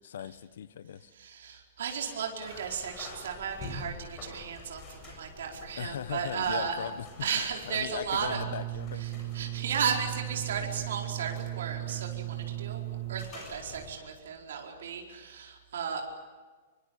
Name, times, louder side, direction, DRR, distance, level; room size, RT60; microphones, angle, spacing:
voice 1, 0.0-1.1 5.8-7.1 7.7-9.4, left 9 dB, 70° left, 15 dB, 1.2 m, -39 dB
voice 2, 1.1-6.9 7.2-8.4 9.0-16.0, right 7 dB, 75° right, 1 dB, 4.8 m, -35 dB
sound 1, 2.4-13.9, left 2 dB, 20° left, 7.4 m, -48 dB
sound 2, 8.2-13.2, right 17 dB, 25° right, 2.1 m, -36 dB
25.0 x 24.5 x 8.6 m, 1.4 s
supercardioid pair, 175°, 0 cm